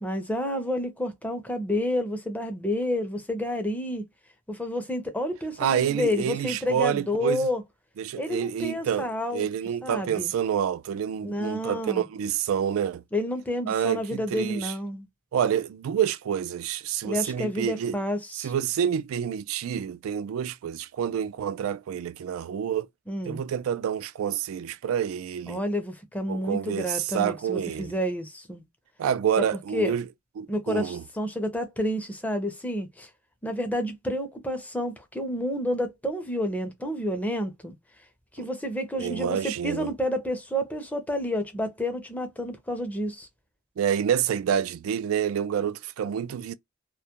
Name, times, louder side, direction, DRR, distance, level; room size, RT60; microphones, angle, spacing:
voice 1, 0.0-4.0 4.5-7.6 8.2-9.5 9.8-10.3 11.2-12.1 13.1-15.1 17.0-18.5 23.1-23.4 25.5-28.6 29.7-29.9 30.5-33.1 33.4-37.8 38.3-43.3, left 1 dB, 5° left, 0.5 m, -29 dB
voice 2, 5.6-7.5 8.0-13.0 13.7-14.7 15.3-18.0 18.4-22.9 23.2-25.6 26.3-28.0 29.0-30.1 30.4-31.0 38.4-38.5 39.0-39.9 43.8-46.5, right 8 dB, 85° right, 0.3 m, -28 dB
2.3 x 2.0 x 2.8 m
head